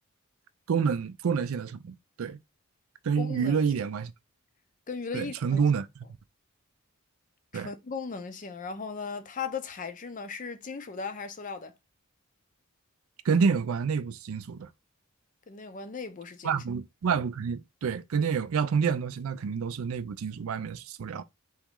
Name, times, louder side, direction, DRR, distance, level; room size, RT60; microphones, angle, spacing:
voice 1, 0.7-2.4 3.0-4.1 5.1-5.9 7.5-7.7 13.2-14.7 16.4-21.2, right 6 dB, 70° right, 0.4 m, -28 dB
voice 2, 3.2-3.6 4.9-5.6 7.5-11.7 15.5-16.6, left 5 dB, 35° left, 0.5 m, -37 dB
3.5 x 3.0 x 3.6 m
head